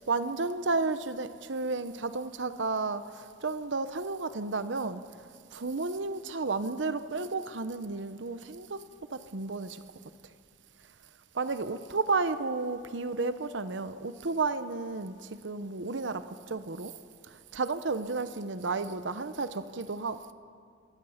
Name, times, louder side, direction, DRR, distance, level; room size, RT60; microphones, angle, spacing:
voice 1, 0.0-5.0 5.5-9.8 10.2-10.3 11.3-16.9 17.3-20.3, right 3 dB, 85° right, 0.9 m, -32 dB
26.5 x 22.0 x 5.8 m
head